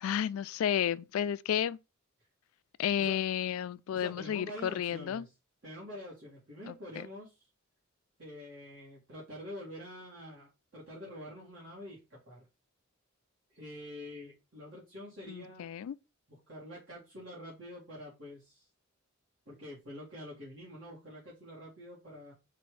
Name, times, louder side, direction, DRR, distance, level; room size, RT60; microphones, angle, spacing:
voice 1, 0.0-1.8 2.8-5.3 6.7-7.1 15.3-15.9, left 9 dB, 90° left, 0.3 m, -32 dB
voice 2, 3.9-5.3 5.6-7.5 8.2-12.5 13.5-15.7 16.3-18.7 19.5-22.3, left 1 dB, 65° right, 1.9 m, -46 dB
4.2 x 2.6 x 4.7 m
head